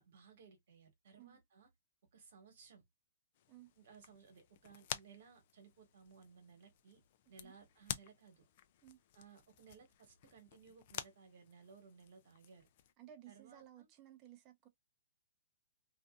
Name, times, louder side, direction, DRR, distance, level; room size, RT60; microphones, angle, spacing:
voice 1, 0.0-1.7 2.1-2.8 3.8-7.0 7.3-8.4 9.1-12.7 13.3-13.9, right 5 dB, 65° right, 1.3 m, -60 dB
sound 1, 3.3-12.9, left 11 dB, 50° left, 0.4 m, -51 dB
voice 2, 13.0-14.7, right 12 dB, 30° right, 0.7 m, -57 dB
2.6 x 2.5 x 2.2 m
hypercardioid pair, 130°, 0 cm